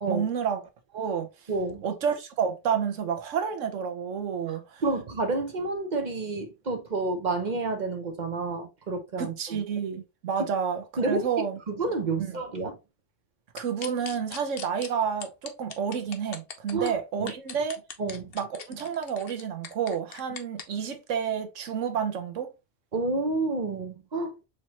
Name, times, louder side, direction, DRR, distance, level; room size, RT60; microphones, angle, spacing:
voice 1, 0.1-1.3 1.8-4.8 9.2-11.6 12.2-12.4 13.5-17.8 18.3-22.5, right 7 dB, 80° right, 1.2 m, -30 dB
voice 2, 1.5-1.8 4.5-9.6 10.4-10.5 11.0-11.2 11.7-12.8 16.7-16.9 17.2-17.3 18.0-18.3 22.9-24.3, right 3 dB, 40° right, 0.8 m, -29 dB
sound 1, 13.6-14.9 15.2-16.9 17.3-20.6, left 7 dB, 55° left, 0.9 m, -40 dB
4.3 x 3.2 x 2.9 m
omnidirectional pair, 1.3 m